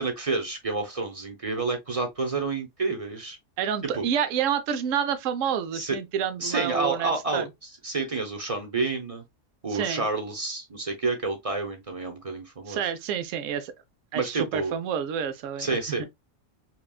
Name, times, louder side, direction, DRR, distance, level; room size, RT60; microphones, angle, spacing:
voice 1, 0.0-3.4 3.9-4.0 5.7-6.0 6.4-9.2 9.6-12.8 14.1-14.7 15.6-16.1, right 3 dB, 30° right, 0.8 m, -29 dB
voice 2, 3.6-7.5 9.7-10.1 12.7-13.7 14.1-15.8, right 8 dB, 80° right, 1.0 m, -28 dB
5.8 x 2.3 x 2.3 m
omnidirectional pair, 1.3 m